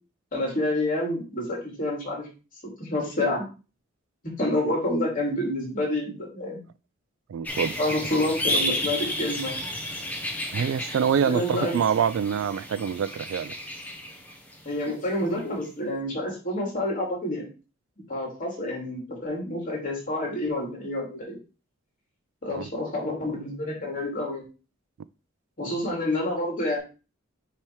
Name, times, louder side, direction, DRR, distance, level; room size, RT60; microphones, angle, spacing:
voice 1, 0.3-2.3 2.8-3.4 4.2-6.6 7.8-9.7 11.3-11.7 14.6-17.5 18.1-21.4 22.4-24.4 25.6-26.8, left 1 dB, 40° left, 2.8 m, -28 dB
voice 2, 7.3-7.8 10.5-13.5 22.5-22.7, right 7 dB, 70° right, 0.3 m, -25 dB
sound 1, 7.4-15.0 15.4-15.5, left 1 dB, 10° left, 1.1 m, -32 dB
8.6 x 3.2 x 4.6 m
head